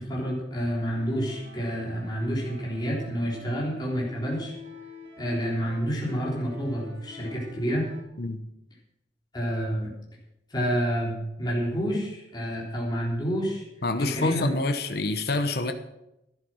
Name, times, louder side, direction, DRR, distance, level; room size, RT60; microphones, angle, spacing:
voice 1, 0.0-4.5 5.2-7.9 9.3-9.9 10.5-13.6 14.0-14.5, equal, 25° left, -3 dB, 3.6 m, -29 dB
sound 1, 0.9-8.0, left 3 dB, 80° right, 3.0 m, -45 dB
voice 2, 13.8-15.7, left 2 dB, 60° left, 8 dB, 0.9 m, -27 dB
12.0 x 11.0 x 6.3 m, 0.88 s
head